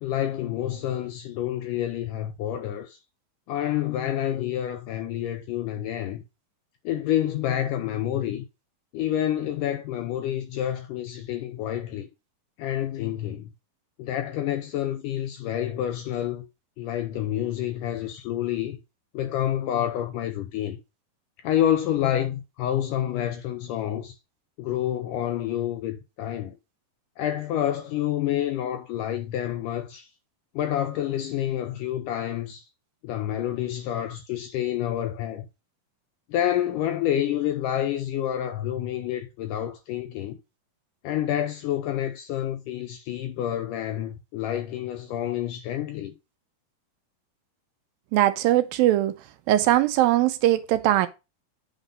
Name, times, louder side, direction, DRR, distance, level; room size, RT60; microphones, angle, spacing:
voice 1, 0.0-3.0 3.5-6.2 6.9-8.4 8.9-12.1 12.6-13.5 14.0-16.4 16.8-18.8 19.1-20.8 21.4-24.1 24.6-26.6 27.2-30.1 30.6-32.6 33.0-35.4 36.3-40.4 41.0-46.1, left 11 dB, 80° left, 1.9 m, -28 dB
voice 2, 48.1-49.1 49.5-51.1, right 14 dB, 80° right, 2.3 m, -20 dB
8.2 x 3.9 x 5.4 m
omnidirectional pair, 4.4 m